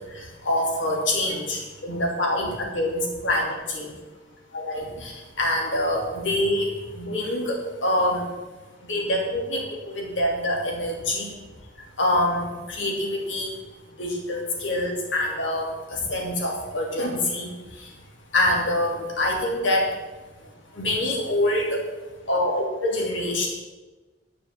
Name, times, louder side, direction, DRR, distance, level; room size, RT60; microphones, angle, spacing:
voice 1, 0.2-3.9 4.5-5.1 5.4-8.2 8.9-11.3 12.0-13.6 14.0-17.5 18.3-19.8 20.7-21.8 22.3-23.5, left 1 dB, 75° left, -1 dB, 3.0 m, -25 dB
10.5 x 6.9 x 7.5 m, 1.2 s
head